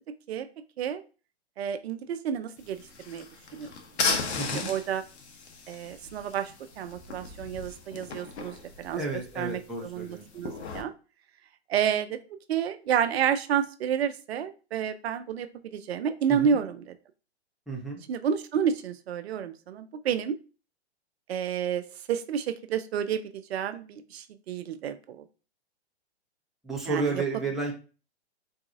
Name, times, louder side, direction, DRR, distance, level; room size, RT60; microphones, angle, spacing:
voice 1, 1.6-3.3 3.5-3.7 4.7-5.0 5.7-9.0 9.4-10.9 11.7-12.2 12.5-16.9 18.1-20.4 21.3-25.2 26.9-27.2, right 8 dB, 65° right, 10 dB, 0.5 m, -30 dB
sound 1, 2.6-10.8, left 4 dB, 75° left, 0.9 m, -36 dB
voice 2, 4.4-4.7 9.0-10.4 16.3-16.6 17.7-18.0 26.6-27.7, right 3 dB, ahead, -3 dB, 0.6 m, -32 dB
3.9 x 2.6 x 2.5 m, 0.34 s
hypercardioid pair, 125°, 33 cm